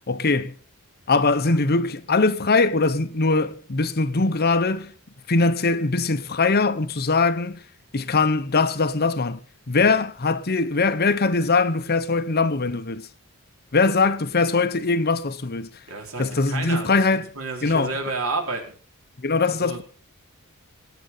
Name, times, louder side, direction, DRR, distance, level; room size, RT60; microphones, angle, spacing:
voice 1, 0.1-0.5 1.1-4.9 5.3-7.6 7.9-9.4 9.7-13.1 13.7-15.7 16.2-17.3 17.6-18.0 19.2-19.8, left 3 dB, 45° left, 1.0 m, -21 dB
voice 2, 15.9-18.6 19.6-19.8, right 3 dB, 65° right, 4.7 m, -30 dB
20.0 x 9.4 x 5.7 m
head